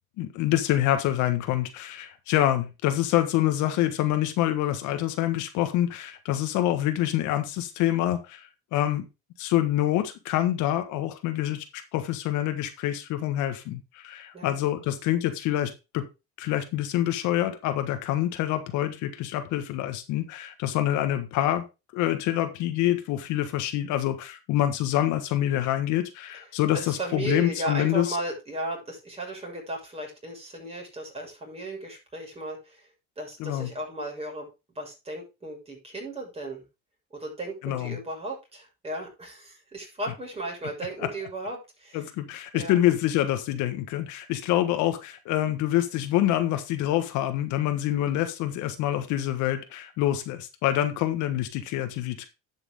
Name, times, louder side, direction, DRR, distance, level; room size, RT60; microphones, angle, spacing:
voice 1, 0.2-9.0 9.4-16.1 16.4-21.6 21.9-28.2 33.4-33.7 37.6-38.0 41.0-41.1 41.9-52.3, left 13 dB, 70° left, 8 dB, 1.5 m, -26 dB
voice 2, 26.7-32.9 33.2-34.5 34.7-36.6 37.1-42.0 42.5-42.8, right 2 dB, 20° right, 0 dB, 6.7 m, -35 dB
11.5 x 6.4 x 3.6 m, 0.27 s
supercardioid pair, 110°, 31 cm